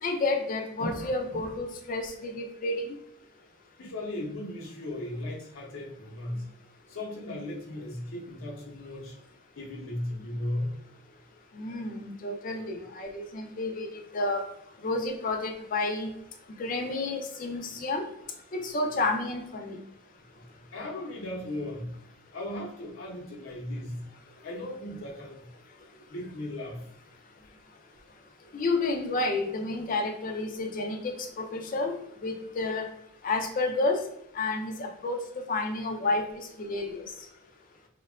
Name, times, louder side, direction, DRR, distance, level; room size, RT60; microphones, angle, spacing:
voice 1, 0.0-2.9 11.5-14.4 14.8-16.1 16.6-18.1 18.5-19.8 28.5-31.9 32.2-32.9 33.2-34.0 34.3-37.1, left 2 dB, 40° left, 3 dB, 0.4 m, -30 dB
voice 2, 3.8-6.5 6.9-9.2 9.5-10.7 20.2-21.9 22.3-24.1 24.4-25.5 26.1-26.9 27.3-27.5, left 1 dB, 75° left, -2 dB, 0.6 m, -37 dB
2.8 x 2.2 x 2.3 m, 0.80 s
head